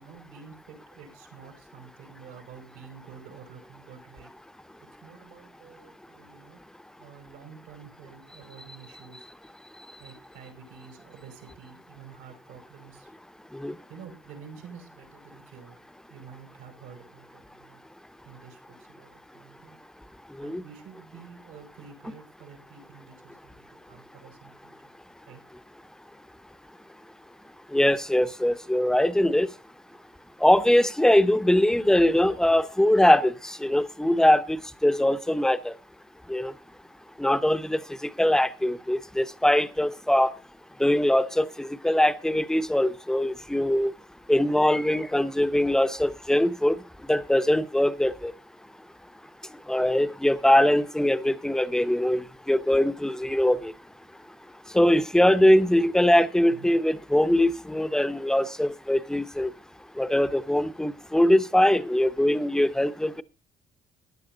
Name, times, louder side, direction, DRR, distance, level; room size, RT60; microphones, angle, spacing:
voice 1, 0.0-4.3 5.0-6.6 7.0-9.3 10.0-13.1 13.9-15.8 16.1-17.8 18.2-19.8 20.4-24.7 25.3-25.4 56.5-56.8, right 6 dB, 85° right, 5.6 m, -49 dB
voice 2, 27.7-29.5 30.4-34.6 34.8-35.7 36.3-36.5 37.2-37.8 38.2-40.3 40.8-43.9 44.3-46.7 47.1-48.3 49.7-53.7 54.7-59.5 60.0-63.2, left 1 dB, 5° left, 0.8 m, -22 dB
15.5 x 10.5 x 3.9 m
cardioid pair, 135°, 15 cm